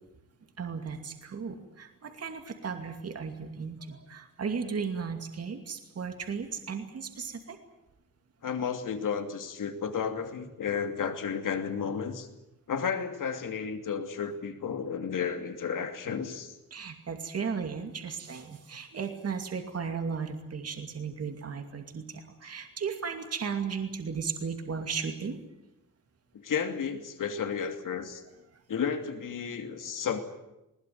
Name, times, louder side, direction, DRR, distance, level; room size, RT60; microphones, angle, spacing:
voice 1, 0.6-7.6 16.7-25.4, right 6 dB, 45° right, 5 dB, 2.5 m, -35 dB
voice 2, 8.4-12.3 12.7-16.5 26.3-28.2 28.7-30.2, left 6 dB, 65° left, 7 dB, 2.8 m, -32 dB
21.0 x 20.0 x 9.4 m, 0.92 s
wide cardioid pair, 165°, 34 cm